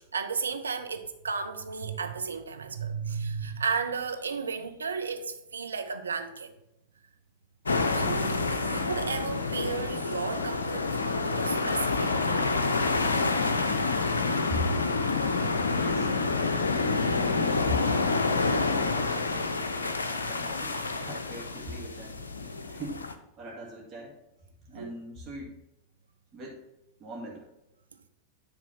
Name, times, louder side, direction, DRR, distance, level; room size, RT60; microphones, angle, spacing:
voice 1, 0.0-6.5 7.8-12.7 15.6-15.7 21.7-21.9 24.7-24.9, right 5 dB, 75° right, 0.7 m, -34 dB
sound 1, 7.7-23.1, left 3 dB, 75° left, 0.6 m, -28 dB
voice 2, 15.8-16.2 16.9-22.2 22.7-23.0 23.4-24.1 24.7-25.5 26.3-26.6 27.0-27.5, left 1 dB, 25° right, 2.0 m, -40 dB
9.8 x 3.4 x 5.7 m
figure-of-eight pair, 90°, 0 cm